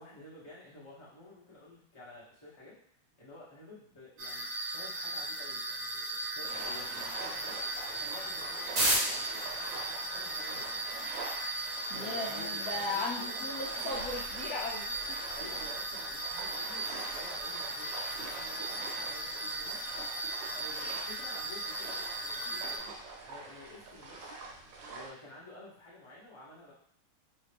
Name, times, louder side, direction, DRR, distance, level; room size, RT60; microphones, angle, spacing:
voice 1, 0.0-2.8 3.2-7.6 7.9-10.8 11.9-13.8 15.3-19.8 20.5-23.0 23.3-24.4 24.9-26.7, left 1 dB, 20° left, -7 dB, 0.8 m, -51 dB
sound 1, 4.2-22.8, right 2 dB, 55° right, 1.0 m, -36 dB
sound 2, 6.5-25.1, right 3 dB, 75° right, 1.4 m, -44 dB
voice 2, 11.9-15.2, left 3 dB, 80° left, -4 dB, 0.8 m, -37 dB
3.2 x 2.7 x 3.3 m, 0.68 s
omnidirectional pair, 2.2 m